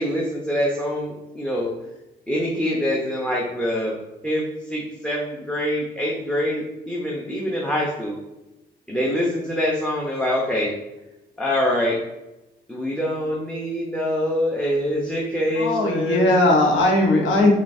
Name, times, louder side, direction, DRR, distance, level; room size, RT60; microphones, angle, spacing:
voice 1, 0.0-1.7 2.3-4.0 4.2-8.2 8.9-10.7 11.4-12.0 12.7-16.3, equal, 5° left, -3 dB, 0.7 m, -25 dB
voice 2, 15.6-17.5, left 2 dB, 70° left, -1 dB, 0.9 m, -18 dB
5.8 x 2.4 x 2.6 m, 0.97 s
cardioid pair, 90°, 20 cm